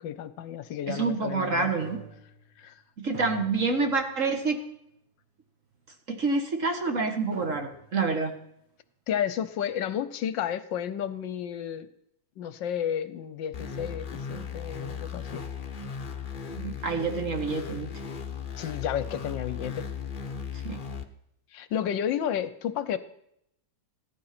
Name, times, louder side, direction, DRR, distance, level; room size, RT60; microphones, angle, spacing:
voice 1, 0.0-1.7 2.6-2.8 9.1-11.9 12.4-15.4 18.6-19.9 21.5-23.0, left 9 dB, 75° left, 14 dB, 1.4 m, -32 dB
voice 2, 0.9-2.0 3.0-4.6 6.1-8.3 16.5-17.9 20.6-20.8, right 4 dB, 45° right, 5 dB, 1.7 m, -27 dB
sound 1, 1.8-2.7 3.1-4.3 4.7-4.8 5.7-5.8 6.9-7.0 7.3-8.1, right 5 dB, 80° right, 6.2 m, -44 dB
sound 2, 13.5-21.0, left 6 dB, 35° left, 0.8 m, -37 dB
15.5 x 11.5 x 5.9 m, 0.76 s
omnidirectional pair, 2.1 m